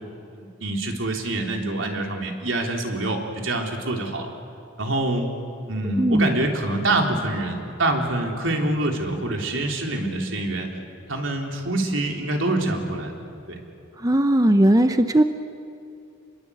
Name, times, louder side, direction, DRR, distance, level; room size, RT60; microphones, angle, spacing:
voice 1, 0.3-4.3 4.8-5.3 5.6-10.7 11.1-13.1 13.5-13.6, right 2 dB, 80° right, 2 dB, 3.5 m, -25 dB
voice 2, 6.0-6.3 14.0-15.2, right 1 dB, 20° right, 8 dB, 0.7 m, -18 dB
28.5 x 21.5 x 8.4 m, 2.6 s
head